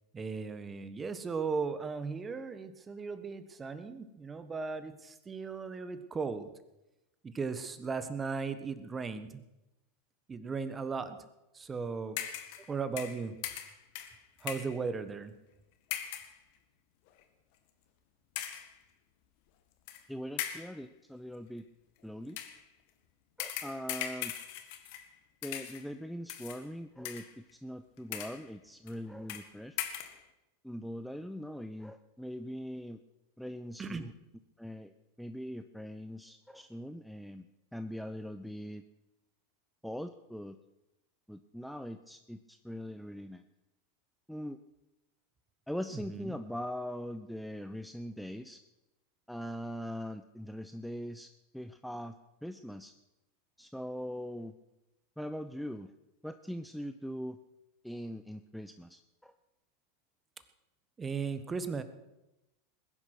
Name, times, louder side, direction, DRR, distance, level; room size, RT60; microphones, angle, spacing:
voice 1, 0.1-6.5 7.2-9.4 10.3-11.2 11.5-12.2 12.7-13.4 14.4-15.3 33.8-34.1 46.1-46.3 61.0-61.8, right 5 dB, 20° right, 12 dB, 1.4 m, -37 dB
sound 1, 12.2-12.7 13.0-14.8 15.9-16.4 17.1-17.2 18.4-18.8 19.9-20.0 20.4-20.8 22.3-22.6 23.4-25.1 25.4-25.9 26.3-26.6 27.0-27.5 28.0-28.5 28.9-29.0 29.3-29.5 29.8-30.2, left 11 dB, 55° left, 1.9 m, -39 dB
voice 2, 20.1-21.6 22.0-22.4 23.4-24.3 25.4-29.8 30.6-33.0 33.4-34.1 34.6-34.9 35.2-37.5 37.7-38.8 39.8-40.6 41.3-43.4 44.3-44.6 45.7-48.6 49.3-52.1 52.4-52.9 53.6-54.5 55.2-55.9 56.2-57.4 57.8-59.3, equal, ahead, 9 dB, 0.7 m, -41 dB
20.0 x 11.0 x 6.2 m, 0.96 s
hypercardioid pair, 90°, 0 cm